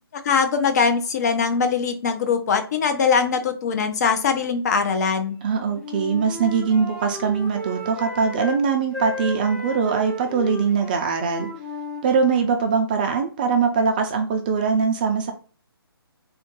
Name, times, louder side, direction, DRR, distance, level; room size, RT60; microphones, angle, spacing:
voice 1, 0.2-5.4, left 5 dB, 40° left, 7 dB, 0.7 m, -21 dB
voice 2, 5.4-11.5 12.0-15.3, right 5 dB, 20° right, 4 dB, 0.4 m, -22 dB
Wind instrument woodwind instrument, 5.5-8.6 8.9-12.7, left 1 dB, 5° left, 0.7 m, -34 dB
3.7 x 2.5 x 3.6 m, 0.37 s
hypercardioid pair, 155°, 13 cm